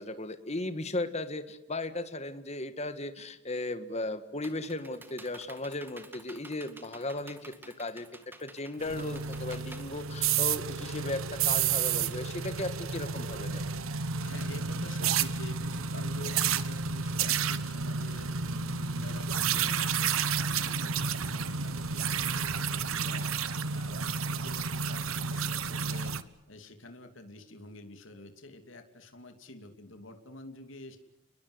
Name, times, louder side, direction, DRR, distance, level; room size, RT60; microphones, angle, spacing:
voice 1, 0.0-8.1 8.4-13.6, left 2 dB, 30° left, 10 dB, 1.8 m, -36 dB
Computer keyboard, 3.9-10.8, right 2 dB, 10° right, 2.0 m, -51 dB
sound 1, 8.8-26.2, right 6 dB, 90° right, 1.3 m, -31 dB
voice 2, 14.2-26.2 26.5-31.0, left 2 dB, 70° left, 6 dB, 2.8 m, -48 dB
30.0 x 21.5 x 8.1 m, 0.91 s
head